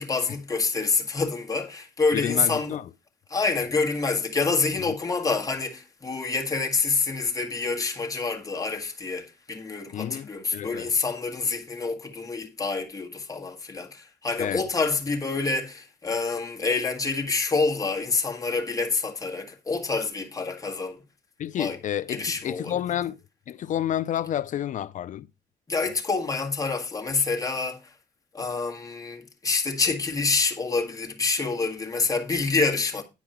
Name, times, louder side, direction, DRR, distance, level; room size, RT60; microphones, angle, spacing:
voice 1, 0.0-2.8 3.3-21.0 21.5-21.8 22.1-22.7 25.7-27.9 28.3-33.0, left 4 dB, 20° left, 1.8 m, -27 dB
voice 2, 2.1-2.8 9.9-10.9 14.4-14.6 21.4-23.2 23.5-25.3, left 11 dB, 50° left, 0.4 m, -30 dB
10.5 x 4.7 x 5.7 m
cardioid pair, 125°, 16 cm